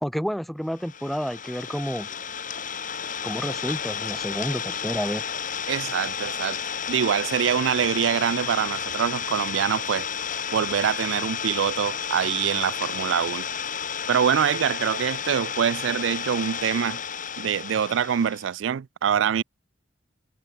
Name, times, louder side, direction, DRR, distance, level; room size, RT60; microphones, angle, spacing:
voice 1, 0.0-2.1 3.2-5.2, equal, ahead, 0.8 m, -30 dB
Idling, 0.8-18.5, left 7 dB, 45° left, 2.0 m, -32 dB
voice 2, 5.7-6.6 6.9-10.1 10.5-13.4 14.1-17.0 17.4-19.4, right 8 dB, 85° right, 0.4 m, -24 dB
head